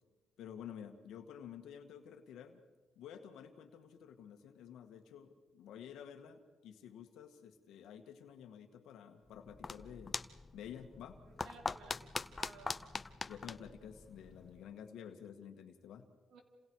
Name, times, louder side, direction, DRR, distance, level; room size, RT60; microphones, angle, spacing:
voice 1, 0.4-2.6 3.0-10.2 10.5-11.2 13.3-16.2, left 8 dB, 80° left, 5 dB, 1.8 m, -51 dB
sound 1, 9.3-14.7, left 3 dB, 30° left, 0.8 m, -43 dB
voice 2, 11.2-12.8 16.3-16.4, right 4 dB, 80° right, 3 dB, 3.5 m, -57 dB
29.0 x 27.5 x 4.8 m, 1.4 s
cardioid pair, 90°, 0 cm